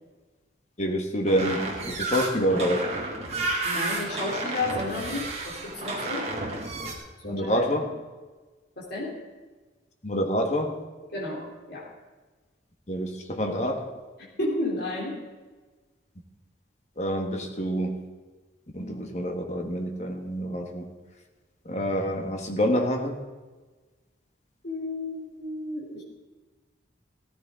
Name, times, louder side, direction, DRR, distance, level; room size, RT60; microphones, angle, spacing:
voice 1, 0.8-2.9 7.2-7.9 10.0-10.8 12.9-13.9 17.0-18.0 18.7-20.9 21.7-23.2, equal, 35° left, 3 dB, 1.6 m, -27 dB
sound 1, 1.3-6.9, right 2 dB, 30° right, 2.2 m, -31 dB
voice 2, 3.6-6.3 7.2-7.9 8.8-9.1 11.1-11.9 14.2-15.2 24.6-26.0, left 2 dB, 55° left, -5 dB, 3.4 m, -32 dB
16.0 x 14.5 x 3.8 m, 1.3 s
head